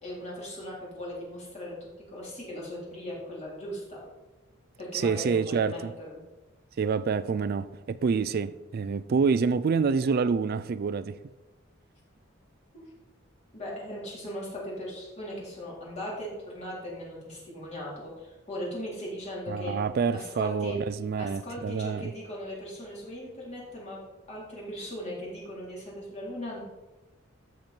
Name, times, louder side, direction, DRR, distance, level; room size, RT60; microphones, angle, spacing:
voice 1, 0.0-4.0 4.8-6.2 12.7-12.8 13.5-19.8 20.1-20.8 21.2-24.0 24.3-26.6, equal, 35° left, 4.1 m, -38 dB
voice 2, 4.9-5.9 6.8-11.1 19.5-22.1, right 5 dB, 50° right, 0.4 m, -27 dB
13.0 x 7.4 x 4.5 m
head